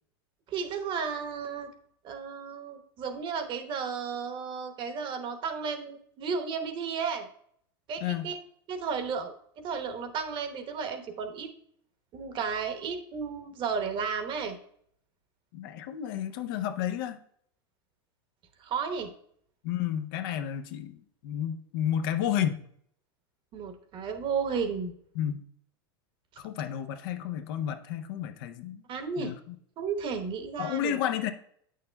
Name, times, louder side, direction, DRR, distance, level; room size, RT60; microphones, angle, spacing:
voice 1, 0.5-1.7 2.0-7.3 7.9-8.4 8.7-11.5 12.1-14.6 18.6-19.1 23.5-24.9 28.9-29.3 29.8-31.0, right 6 dB, 40° right, 8 dB, 1.0 m, -33 dB
voice 2, 15.5-17.2 19.6-22.6 25.1-25.4 26.4-28.8 29.2-29.5 30.6-31.3, left 10 dB, 65° left, 8 dB, 0.7 m, -31 dB
8.6 x 6.5 x 2.2 m, 0.64 s
hypercardioid pair, 110°, 13 cm